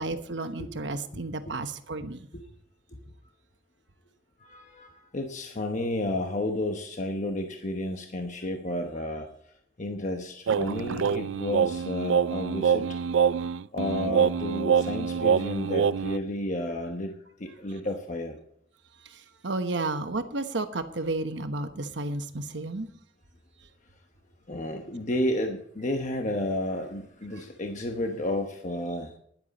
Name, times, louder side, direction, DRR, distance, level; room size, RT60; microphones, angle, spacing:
voice 1, 0.0-2.3 19.0-22.9 27.3-27.4, right 2 dB, 65° right, 8 dB, 1.1 m, -32 dB
voice 2, 4.4-9.3 9.8-12.9 13.7-18.4 24.5-29.2, left 1 dB, 40° left, 4 dB, 1.0 m, -32 dB
sound 1, 10.5-16.2, right 7 dB, 85° right, 0.4 m, -25 dB
13.0 x 11.0 x 4.2 m, 0.67 s
head